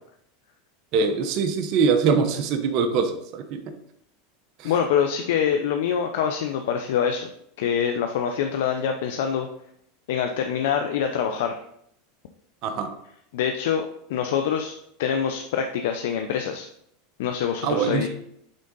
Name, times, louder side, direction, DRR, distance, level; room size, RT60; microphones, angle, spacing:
voice 1, 0.9-3.7 4.6-4.7 12.6-12.9 17.6-18.1, right 5 dB, 50° right, 5 dB, 0.9 m, -23 dB
voice 2, 4.6-7.3 7.6-9.5 10.1-11.6 13.3-16.7 17.2-18.1, left 8 dB, 75° left, 5 dB, 0.6 m, -25 dB
8.9 x 3.8 x 3.8 m, 0.72 s
supercardioid pair, 120°, 0 cm